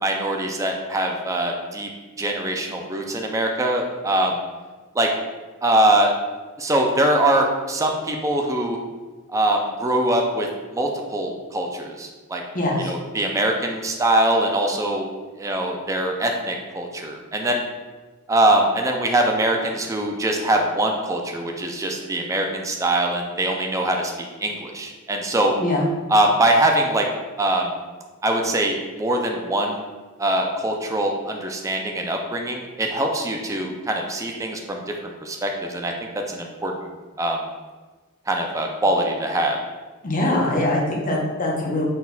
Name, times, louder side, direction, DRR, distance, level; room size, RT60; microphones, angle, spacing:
voice 1, 0.0-1.9 2.2-4.4 4.9-5.1 5.6-6.1 6.6-8.8 9.3-12.4 12.8-15.1 15.4-17.6 18.3-25.5 26.1-27.1 27.4-27.7 28.2-29.8 30.2-36.9 37.2-37.4 38.3-39.6, right 1 dB, 15° right, 2 dB, 0.4 m, -23 dB
voice 2, 12.5-12.9 25.6-25.9 40.0-41.9, left 1 dB, 40° left, -2 dB, 0.8 m, -22 dB
4.1 x 3.9 x 2.2 m, 1.3 s
head